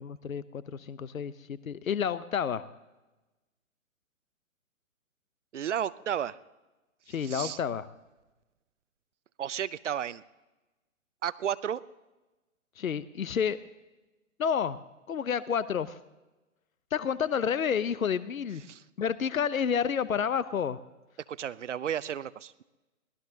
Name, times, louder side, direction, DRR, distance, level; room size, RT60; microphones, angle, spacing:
voice 1, 0.0-2.6 7.1-7.9 12.8-13.6 14.4-14.8 15.1-16.0 16.9-18.6 19.0-20.8, left 7 dB, 75° left, 17 dB, 0.8 m, -30 dB
voice 2, 5.5-6.4 7.2-7.6 9.4-10.2 11.2-11.8 18.7-18.8 21.3-22.6, right 9 dB, 60° right, 17 dB, 0.7 m, -33 dB
24.0 x 18.0 x 2.8 m, 1.1 s
figure-of-eight pair, 130°, 41 cm